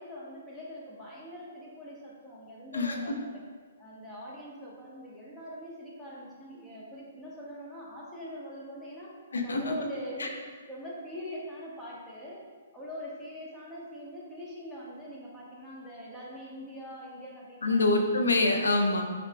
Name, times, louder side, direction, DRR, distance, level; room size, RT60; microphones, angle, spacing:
voice 1, 0.0-3.4 3.8-10.4 10.7-12.4 12.7-17.9, equal, 10° left, -6 dB, 1.1 m, -43 dB
voice 2, 2.7-3.1 9.3-9.7 10.2-10.3 17.6-19.0, left 2 dB, 90° left, 4 dB, 0.6 m, -25 dB
4.9 x 4.8 x 2.2 m, 1.5 s
hypercardioid pair, 140°, 0 cm